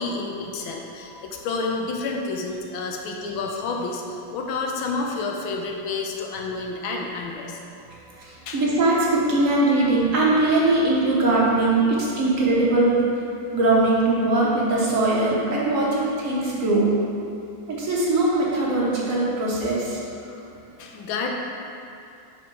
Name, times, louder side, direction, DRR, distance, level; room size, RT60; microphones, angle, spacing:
voice 1, 0.0-7.6 8.5-8.6 20.2-21.3, left 3 dB, 90° left, 0 dB, 1.4 m, -30 dB
voice 2, 7.8-13.0 13.5-16.9 17.7-20.0, right 2 dB, 50° right, -5 dB, 1.2 m, -21 dB
5.3 x 4.2 x 5.4 m, 2.6 s
omnidirectional pair, 2.2 m